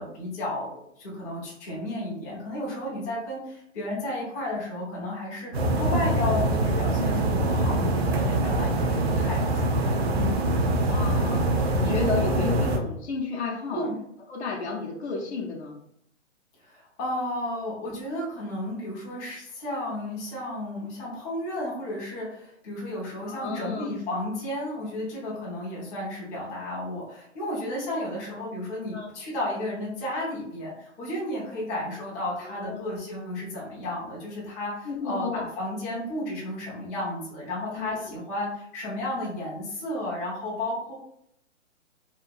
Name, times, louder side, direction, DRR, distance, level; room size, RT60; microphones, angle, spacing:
voice 1, 0.0-10.4 13.7-13.9 16.6-40.9, left 1 dB, 15° left, -7 dB, 0.4 m, -33 dB
sound 1, 5.5-12.8, right 1 dB, 55° right, 0.5 m, -24 dB
voice 2, 10.9-11.4 11.8-13.9 14.3-15.8 23.3-23.9 28.9-29.1 32.4-32.9 34.9-35.4 37.8-38.1, left 4 dB, 60° left, -1 dB, 0.6 m, -32 dB
2.9 x 2.2 x 2.4 m, 0.73 s
hypercardioid pair, 140°, 37 cm